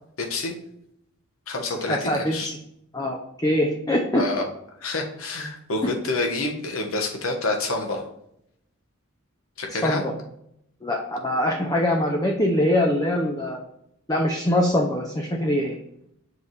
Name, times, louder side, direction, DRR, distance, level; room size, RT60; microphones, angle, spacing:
voice 1, 0.2-0.6 1.5-2.5 4.1-4.4 4.8-8.0 9.6-10.0, left 2 dB, 80° left, 2 dB, 1.2 m, -28 dB
voice 2, 1.9-2.5 2.9-4.2 5.8-5.9 9.8-10.0 10.8-13.6 14.1-15.7, left 1 dB, 20° left, 1 dB, 0.6 m, -23 dB
6.8 x 3.3 x 4.1 m, 0.76 s
head